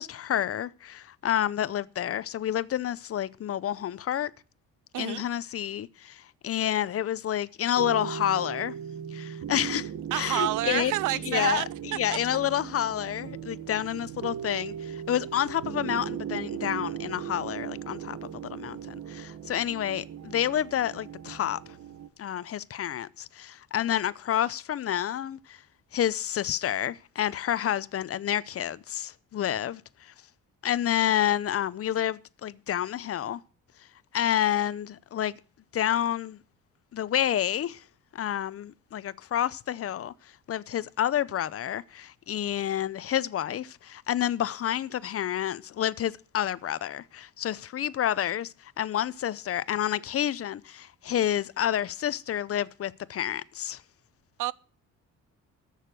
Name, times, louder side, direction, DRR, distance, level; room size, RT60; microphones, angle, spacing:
voice 1, 0.0-4.3 4.9-8.7 9.1-10.9 11.3-11.6 11.9-18.2 18.4-21.6 22.2-25.6 25.9-30.1 30.6-33.4 34.1-35.4 35.7-36.4 36.9-37.8 38.1-40.1 40.5-53.8, left 11 dB, 50° left, 0.6 m, -29 dB
voice 2, 4.9-5.2 10.1-11.7 54.4-54.5, right 15 dB, 85° right, 0.5 m, -28 dB
sound 1, 7.8-22.1, right 9 dB, 60° right, 1.1 m, -38 dB
13.5 x 6.5 x 7.6 m
cardioid pair, 90°, 30 cm